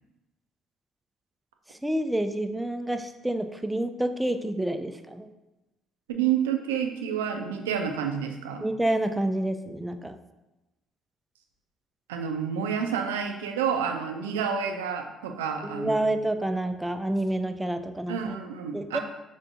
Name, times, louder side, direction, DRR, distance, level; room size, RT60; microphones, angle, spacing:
voice 1, 1.8-5.3 8.6-10.2 15.6-18.4 18.7-19.0, right 1 dB, 10° right, 8 dB, 0.4 m, -28 dB
voice 2, 6.1-8.7 12.1-16.0 18.1-19.0, right 7 dB, 80° right, 4 dB, 0.4 m, -29 dB
5.3 x 3.4 x 2.6 m, 1.0 s
hypercardioid pair, 50°, 0 cm